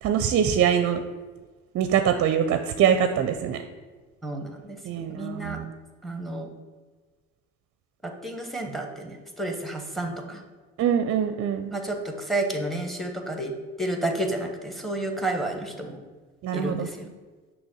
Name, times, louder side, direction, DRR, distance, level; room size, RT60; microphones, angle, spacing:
voice 1, 0.0-1.0 1.7-3.6 4.8-5.7 10.8-11.7 16.4-16.9, right 8 dB, 45° right, 8 dB, 0.5 m, -23 dB
voice 2, 4.2-4.8 5.2-5.6 6.0-6.5 8.0-10.4 11.7-13.5 13.8-16.0 16.5-17.1, right 1 dB, ahead, 4 dB, 1.0 m, -31 dB
6.2 x 2.9 x 5.5 m, 1.4 s
hypercardioid pair, 65°, 32 cm